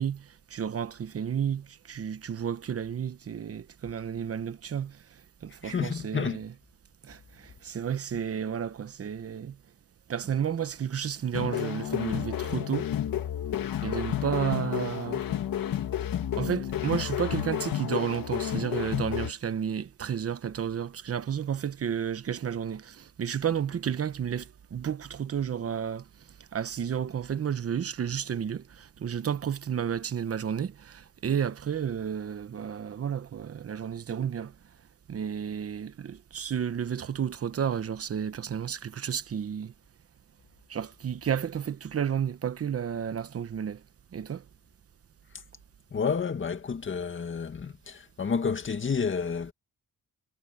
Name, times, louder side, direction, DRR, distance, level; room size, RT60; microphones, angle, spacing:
voice 1, 0.0-5.0 5.4-6.5 7.0-9.6 10.1-12.9 13.8-15.2 16.3-26.0 26.5-34.5 35.1-39.7 40.7-43.8 44.1-44.4, right 8 dB, 40° right, 0.9 m, -32 dB
voice 2, 5.6-6.4 45.9-49.5, left 6 dB, 35° left, 2.0 m, -30 dB
sound 1, 11.3-19.3, left 11 dB, 75° left, 2.1 m, -31 dB
wide cardioid pair, 135°, 35 cm